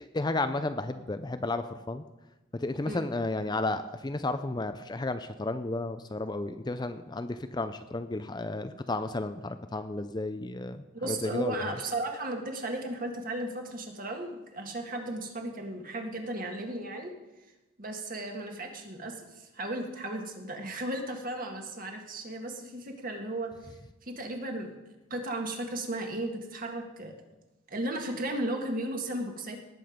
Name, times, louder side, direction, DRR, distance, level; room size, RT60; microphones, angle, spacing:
voice 1, 0.0-2.0 2.5-11.5, left 2 dB, 20° left, 10 dB, 0.4 m, -33 dB
voice 2, 10.9-17.1 17.8-23.5 24.0-24.7 25.1-27.1 27.7-29.6, right 1 dB, 40° right, 3 dB, 1.7 m, -35 dB
18.5 x 7.6 x 5.1 m, 1.0 s
head